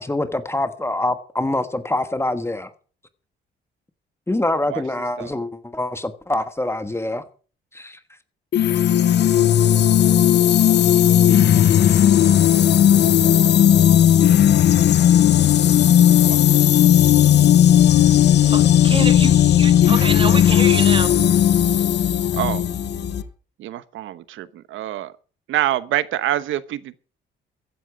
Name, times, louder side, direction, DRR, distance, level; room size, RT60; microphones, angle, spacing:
voice 1, 0.0-2.7 4.3-7.2 7.7-8.0, left 2 dB, 10° left, 1.4 m, -25 dB
sound 1, 8.5-23.2, left 10 dB, 60° left, 0.8 m, -15 dB
sound 2, 17.8-23.2, left 7 dB, 80° left, 4.0 m, -33 dB
voice 2, 18.4-21.1, right 4 dB, 25° right, 1.6 m, -27 dB
voice 3, 22.3-22.6 23.6-25.1 25.5-27.0, right 13 dB, 80° right, 1.0 m, -26 dB
15.0 x 11.0 x 5.1 m
cardioid pair, 90°, 20 cm